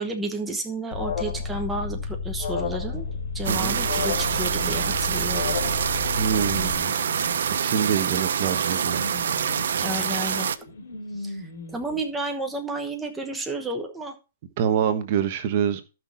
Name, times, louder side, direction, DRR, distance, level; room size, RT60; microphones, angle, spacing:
voice 1, 0.0-3.1 3.3-5.6 8.1-8.2 9.8-10.5 11.2-14.1, right 2 dB, 5° right, 2 dB, 1.1 m, -32 dB
Alarm, 0.9-6.7, left 5 dB, 45° left, 2.2 m, -31 dB
sound 1, 2.9-12.0, left 2 dB, 65° left, 3.1 m, -41 dB
sound 2, 3.4-10.6, right 7 dB, 80° right, 0.8 m, -26 dB
voice 2, 6.2-6.9 7.6-9.0 14.6-15.8, right 8 dB, 45° right, 9 dB, 1.3 m, -25 dB
14.0 x 6.0 x 4.1 m, 0.31 s
hypercardioid pair, 160°, 0 cm